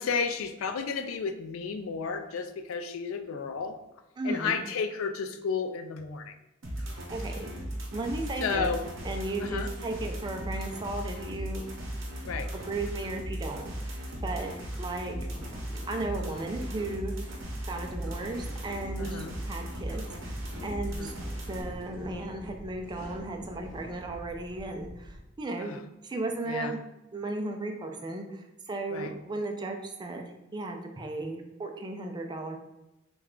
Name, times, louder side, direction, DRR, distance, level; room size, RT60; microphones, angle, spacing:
voice 1, 0.0-3.8 4.2-6.4 8.4-8.8 9.4-9.7 12.3-12.5 19.0-19.3 20.9-21.1 25.6-25.8 26.5-26.7 28.9-29.1, left 5 dB, 85° left, 8 dB, 0.4 m, -32 dB
voice 2, 4.2-4.6 7.1-7.5 7.9-8.7 9.0-11.7 12.0-12.1 12.5-14.5 14.8-15.2 15.9-17.1 17.7-20.4 20.6-25.8 26.0-26.8 27.1-30.2 30.5-32.6, right 2 dB, 20° right, 3 dB, 0.3 m, -35 dB
sound 1, 6.6-21.6, equal, 70° right, 0.8 m, -37 dB
sound 2, 15.2-24.1, left 1 dB, 25° left, 1.2 m, -48 dB
sound 3, 17.4-25.2, equal, 65° left, 0.9 m, -48 dB
3.2 x 2.3 x 3.6 m, 0.95 s
head